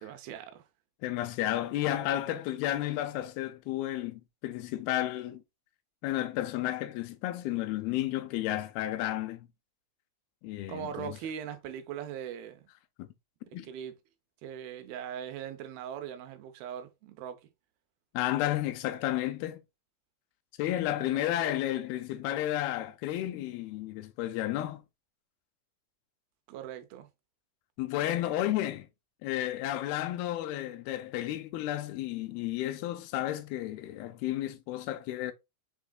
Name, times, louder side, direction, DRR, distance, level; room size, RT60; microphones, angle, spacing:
voice 1, 0.0-0.6 10.7-12.7 13.6-13.9 14.4-17.4 21.0-21.2 26.5-27.1, right 9 dB, 80° right, 2.5 m, -40 dB
voice 2, 1.0-5.4 6.0-9.5 10.4-11.2 13.0-13.1 13.5-13.7 18.1-19.6 20.6-24.8 27.8-28.9 29.2-35.3, left 13 dB, 85° left, 2.4 m, -32 dB
6.2 x 3.6 x 2.2 m
omnidirectional pair, 4.3 m